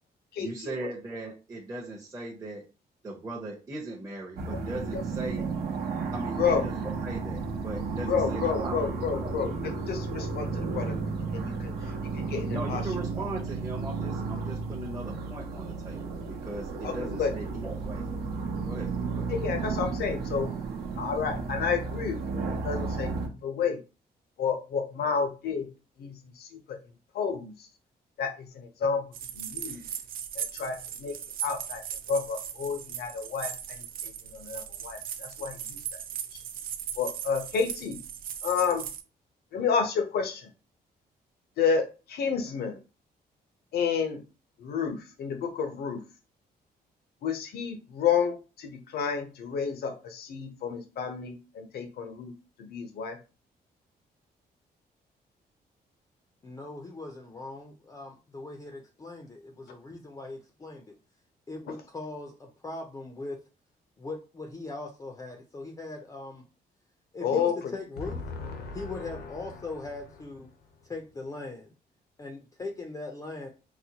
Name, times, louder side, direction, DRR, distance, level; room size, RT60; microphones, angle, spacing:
voice 1, 0.4-2.7 3.0-5.5 6.1-8.8 9.1-9.4 12.5-18.1 18.6-19.3, right 2 dB, 20° right, -3 dB, 0.6 m, -38 dB
sound 1, 4.4-23.3, right 4 dB, 75° right, 0.8 m, -33 dB
voice 2, 8.1-9.5 9.9-11.0 11.3-11.7 12.1-12.8 16.8-16.9 17.2-17.3 19.3-20.5 21.0-23.8 24.4-25.7 26.0-26.8 27.1-27.5 28.2-29.1 29.3-29.8 30.4-31.1 31.4-31.8 32.1-35.8 37.0-38.0 38.4-38.9 39.5-40.5 41.6-42.8 43.7-44.2 44.6-46.0 47.2-52.3 52.6-53.2 67.2-67.6 68.3-68.8, left 6 dB, 75° left, 6 dB, 0.7 m, -30 dB
sound 2, 29.1-39.0, right 9 dB, 60° right, 0.4 m, -38 dB
voice 3, 56.4-61.0 61.5-63.4 64.0-66.4 67.1-68.2 68.7-70.5 70.8-71.7 72.2-73.5, left 2 dB, 20° left, 2 dB, 0.4 m, -40 dB
4.1 x 2.1 x 2.8 m, 0.31 s
cardioid pair, 150°, 17 cm